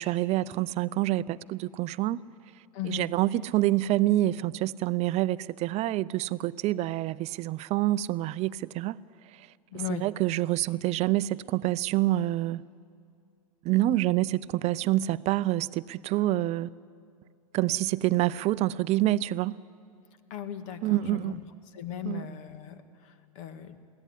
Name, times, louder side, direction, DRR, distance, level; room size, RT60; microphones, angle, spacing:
voice 1, 0.0-2.3 2.9-9.0 9.9-12.6 13.6-16.7 17.5-19.6 20.8-21.4 22.1-22.2, right 15 dB, 35° right, 0.5 m, -27 dB
voice 2, 2.7-3.1 9.7-10.1 20.3-21.4 21.7-23.8, left 11 dB, 55° left, 1.8 m, -38 dB
22.5 x 16.5 x 9.9 m
hypercardioid pair, 95°, 19 cm